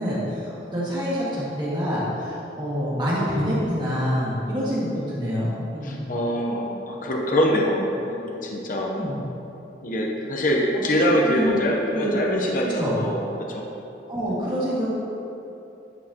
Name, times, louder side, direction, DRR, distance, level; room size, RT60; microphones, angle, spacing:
voice 1, 0.0-6.0 8.9-9.2 11.0-11.5 11.9-12.2 12.8-13.0 14.1-14.9, equal, 25° right, -8 dB, 1.9 m, -26 dB
voice 2, 5.8-8.9 9.8-13.2 13.5-13.6, equal, 50° left, -1 dB, 0.8 m, -24 dB
11.0 x 6.5 x 2.9 m, 2.9 s
head